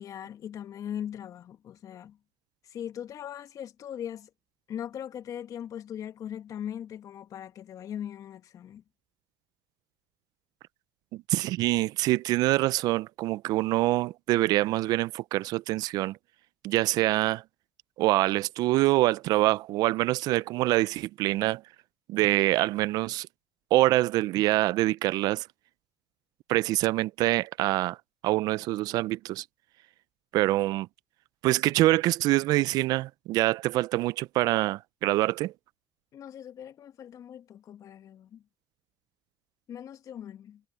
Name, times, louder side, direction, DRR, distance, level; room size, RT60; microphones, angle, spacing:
voice 1, 0.0-2.2 2.7-4.3 4.7-8.8 36.1-38.4 39.7-40.6, left 9 dB, 55° left, 1.6 m, -40 dB
voice 2, 11.1-16.2 16.6-17.4 18.0-21.6 22.1-23.3 23.7-25.5 26.5-28.0 28.2-29.4 30.3-30.9 31.4-35.5, right 17 dB, 70° right, 0.5 m, -25 dB
supercardioid pair, 75°, 7 cm